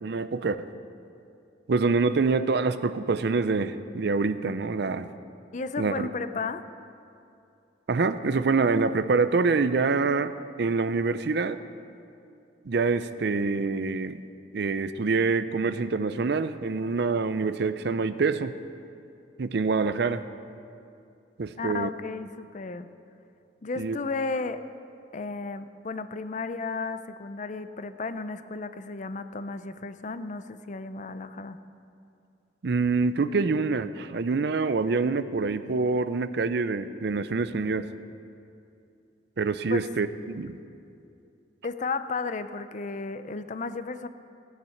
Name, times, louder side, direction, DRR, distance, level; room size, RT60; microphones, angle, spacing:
voice 1, 0.0-0.7 1.7-5.1 5.8-6.1 7.9-11.6 12.7-14.2 14.5-18.6 19.4-20.2 21.4-21.9 23.8-24.0 32.6-37.9 39.4-40.6, right 4 dB, 65° right, 13 dB, 0.5 m, -26 dB
voice 2, 5.5-6.6 21.6-22.9 23.6-24.6 25.1-31.6 39.7-39.8 41.6-44.1, left 4 dB, 45° left, 11 dB, 0.5 m, -33 dB
16.5 x 9.2 x 5.8 m, 2.5 s
head